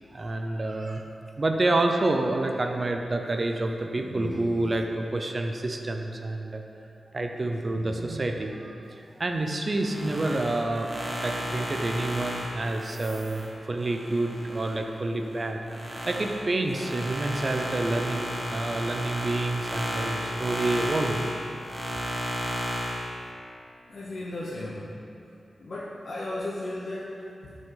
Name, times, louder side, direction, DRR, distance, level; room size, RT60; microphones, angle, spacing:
voice 1, 0.1-1.0 1.4-6.6 7.1-10.9 11.2-15.6 16.1-21.2, right 2 dB, 40° right, 4 dB, 0.6 m, -28 dB
sound 1, 9.7-14.8 15.2-23.1, equal, 20° right, 1.5 m, -33 dB
voice 2, 23.9-25.0 25.6-27.6, left 1 dB, 65° left, -7 dB, 1.0 m, -35 dB
12.0 x 5.3 x 3.9 m, 2.6 s
wide cardioid pair, 90°, 0 cm